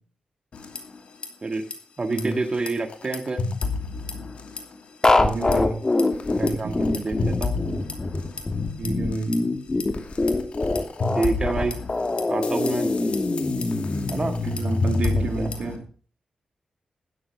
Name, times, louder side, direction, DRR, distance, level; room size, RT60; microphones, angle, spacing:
sound 1, 0.5-1.3 1.5-1.7 2.1-4.8 5.0-5.6 6.0-9.4 9.8-15.8, left 4 dB, 65° left, 2.5 m, -32 dB
voice 1, 2.0-3.4 6.4-7.6 11.2-11.8 12.3-12.9 14.1-14.4 15.1-15.5, right 3 dB, 40° right, 1.8 m, -27 dB
sound 2, 5.0-15.2, left 2 dB, 30° left, 2.1 m, -24 dB
voice 2, 5.2-5.8 6.3-6.8 8.8-9.3 14.4-15.8, right 3 dB, 70° right, 2.4 m, -30 dB
13.0 x 9.6 x 6.0 m
cardioid pair, 70°, 2 cm